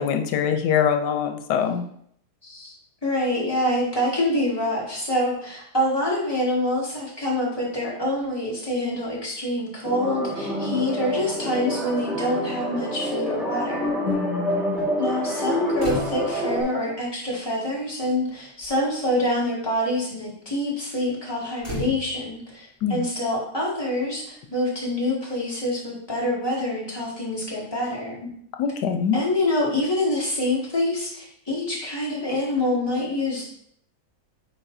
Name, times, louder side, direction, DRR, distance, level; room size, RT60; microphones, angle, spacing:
voice 1, 0.0-1.9 14.0-14.9 22.8-23.1 28.6-29.2, left 7 dB, 90° left, 6 dB, 1.2 m, -24 dB
voice 2, 2.4-2.7 3.0-14.0 15.0-28.3 29.1-33.5, left 1 dB, 15° left, -5 dB, 2.0 m, -26 dB
sound 1, 9.8-16.6, equal, ahead, 1.4 m, -27 dB
sound 2, 15.8-16.5 17.6-17.7 18.0-18.3 18.6-18.9 21.6-22.5 24.1-24.2, left 2 dB, 30° right, 3.2 m, -34 dB
8.9 x 4.7 x 2.6 m, 0.68 s
omnidirectional pair, 1.7 m